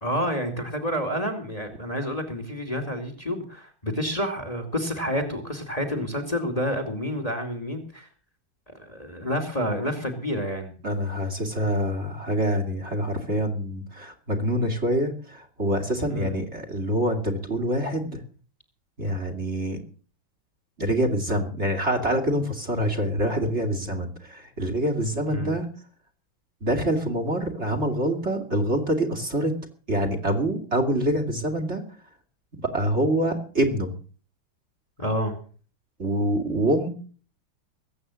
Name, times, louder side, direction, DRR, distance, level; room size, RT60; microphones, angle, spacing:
voice 1, 0.0-8.1 8.7-10.8 16.1-16.4 25.3-25.6 35.0-35.4, equal, 20° left, 7 dB, 2.4 m, -29 dB
voice 2, 10.8-18.2 19.0-19.8 20.8-25.7 26.6-29.5 29.9-31.8 32.6-33.9 36.0-36.9, right 1 dB, 35° right, 7 dB, 2.6 m, -25 dB
21.0 x 8.7 x 6.2 m, 0.42 s
omnidirectional pair, 2.2 m